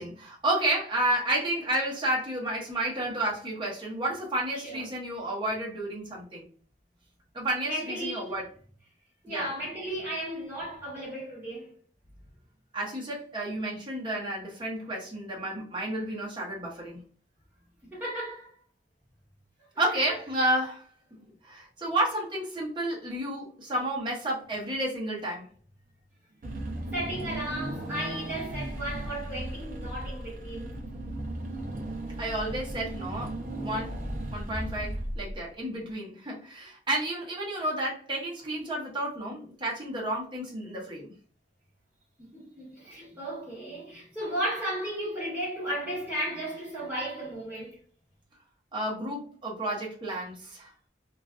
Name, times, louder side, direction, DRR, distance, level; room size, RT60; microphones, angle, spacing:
voice 1, 0.0-6.4 7.3-8.5 9.3-9.5 12.7-17.0 19.8-25.5 32.2-34.0 34.3-41.1 48.7-50.7, right 1 dB, 30° right, 0.8 m, -31 dB
voice 2, 7.6-8.3 9.2-11.8 17.9-18.5 19.7-20.2 26.9-30.8 42.2-47.8, right 1 dB, 10° right, 1.2 m, -35 dB
Car / Engine, 26.4-35.6, right 1 dB, 50° right, 0.5 m, -36 dB
2.4 x 2.4 x 2.3 m
head